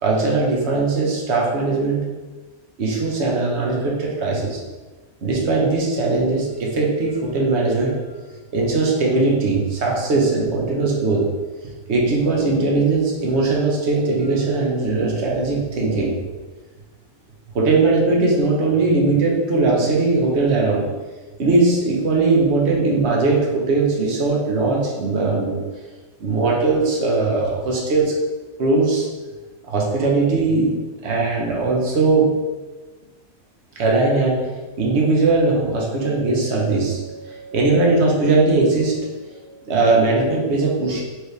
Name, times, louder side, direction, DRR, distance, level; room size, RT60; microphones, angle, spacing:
voice 1, 0.0-2.1 2.8-4.6 5.2-8.0 8.5-11.3 11.9-16.2 17.5-20.9 21.4-25.6 26.2-28.1 28.6-29.1 29.7-30.8 31.0-32.4 33.7-34.5 34.8-41.0, right 3 dB, 50° right, -2 dB, 1.1 m, -19 dB
4.6 x 3.2 x 3.2 m, 1.2 s
omnidirectional pair, 1.6 m